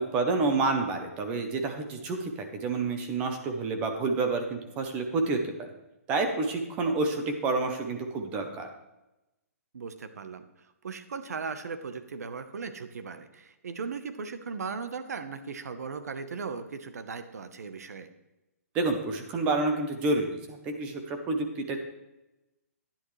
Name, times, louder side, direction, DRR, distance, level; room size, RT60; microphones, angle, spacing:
voice 1, 0.0-5.7 6.1-8.7 18.7-21.8, right 3 dB, 15° right, 5 dB, 0.7 m, -29 dB
voice 2, 9.7-18.1, right 5 dB, 90° right, 10 dB, 1.0 m, -38 dB
11.5 x 10.5 x 3.2 m, 0.95 s
hypercardioid pair, 175°, 8 cm